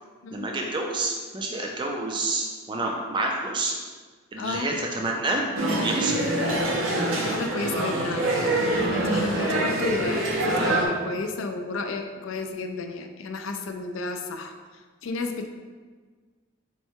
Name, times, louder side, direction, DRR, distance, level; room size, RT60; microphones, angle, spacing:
voice 1, 0.3-3.7 4.3-5.4 5.8-6.2 9.4-9.9, right 2 dB, 20° right, 0 dB, 0.3 m, -28 dB
voice 2, 4.4-4.7 7.2-8.5 8.9-14.5 15.0-15.5, left 3 dB, 65° left, 6 dB, 0.4 m, -32 dB
sound 1, 5.5-10.9, right 1 dB, 80° right, 0.7 m, -25 dB
4.5 x 2.1 x 4.4 m, 1.5 s
head